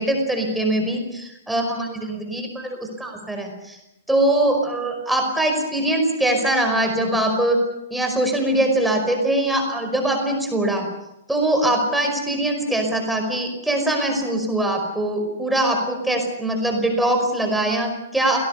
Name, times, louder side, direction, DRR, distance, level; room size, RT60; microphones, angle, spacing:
voice 1, 0.0-3.8 4.1-7.6 7.9-10.9 11.3-18.4, right 1 dB, 5° right, 2 dB, 5.1 m, -22 dB
28.5 x 18.0 x 7.0 m, 0.89 s
figure-of-eight pair, 110°, 0 cm